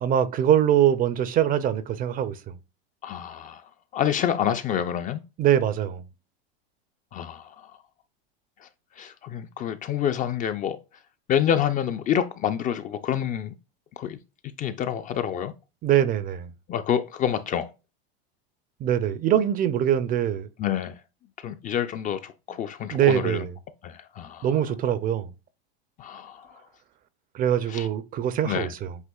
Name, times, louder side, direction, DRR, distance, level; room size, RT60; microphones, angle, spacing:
voice 1, 0.0-2.4 5.4-6.0 15.8-16.5 18.8-20.5 22.9-23.5 24.4-25.3 27.3-29.0, right 10 dB, 30° right, 0.4 m, -23 dB
voice 2, 3.0-3.6 3.9-5.2 7.1-7.7 9.0-10.8 11.3-13.5 14.0-14.2 14.6-15.5 16.7-17.7 20.6-20.9 21.4-23.4 23.8-24.5 26.0-26.5 27.7-27.9 28.4-28.7, left 9 dB, 25° left, 0.4 m, -27 dB
8.0 x 2.9 x 2.3 m
supercardioid pair, 120°, 30 cm